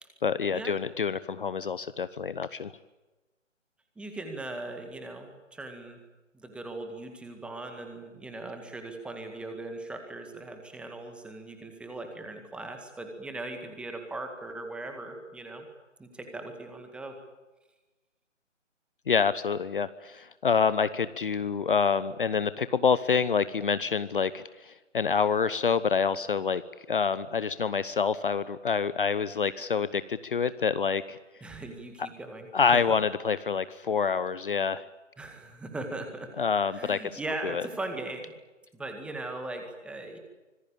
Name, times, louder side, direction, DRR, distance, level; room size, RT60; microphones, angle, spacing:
voice 1, 0.2-2.7 19.1-26.6 26.9-31.2 32.5-34.8 36.4-37.0 37.4-37.6, left 6 dB, 45° left, 15 dB, 1.0 m, -27 dB
voice 2, 4.0-6.0 6.3-15.7 16.0-17.2 31.4-32.8 35.2-36.4 36.7-38.3 38.7-40.2, right 2 dB, 5° right, 5 dB, 1.9 m, -39 dB
25.5 x 20.0 x 8.8 m, 1.1 s
figure-of-eight pair, 145°, 38 cm